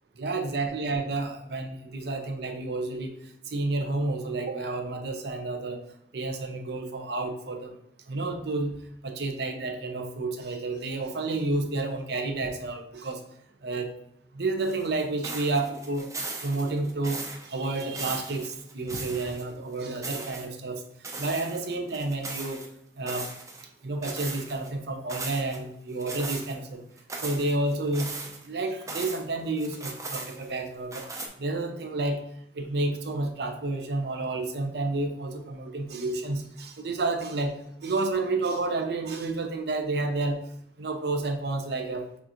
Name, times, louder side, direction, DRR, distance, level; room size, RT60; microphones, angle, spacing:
voice 1, 0.2-3.1 3.5-5.8 6.1-7.8 8.1-13.2 13.6-13.9 14.3-16.1 16.4-20.8 21.2-22.6 23.0-23.3 23.8-26.8 27.2-31.1 31.4-32.2 32.5-40.5 40.8-42.1, right 2 dB, 65° right, 5 dB, 0.6 m, -30 dB
sound 1, 14.6-19.5 19.8-20.4 21.0-22.7 23.1-23.7 24.0-24.7 25.1-25.6 26.0-26.5 27.0-29.2 29.6-30.6 30.9-31.3, right 3 dB, 20° right, 0.5 m, -38 dB
6.4 x 2.5 x 2.9 m, 0.72 s
head